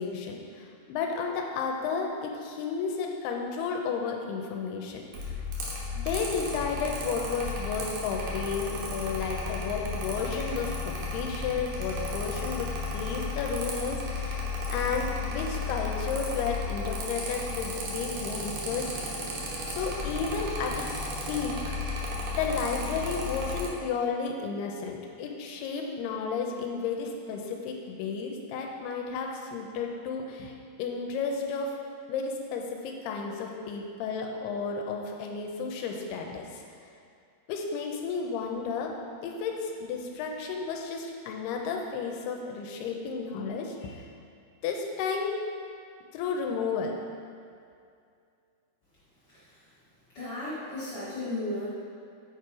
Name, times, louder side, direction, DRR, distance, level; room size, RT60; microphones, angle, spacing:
voice 1, 0.0-5.4 5.9-14.5 14.7-19.2 19.7-21.0 21.3-21.7 22.4-30.5 30.8-31.8 32.1-36.6 37.5-44.1 44.6-45.5 46.1-47.0, left 5 dB, 85° left, 2 dB, 2.6 m, -32 dB
Mechanical fan, 5.1-23.7, left 2 dB, 70° right, 2.1 m, -34 dB
voice 2, 50.1-51.7, left 1 dB, 60° left, -11 dB, 1.1 m, -34 dB
7.3 x 4.7 x 4.6 m, 2.3 s
omnidirectional pair, 4.6 m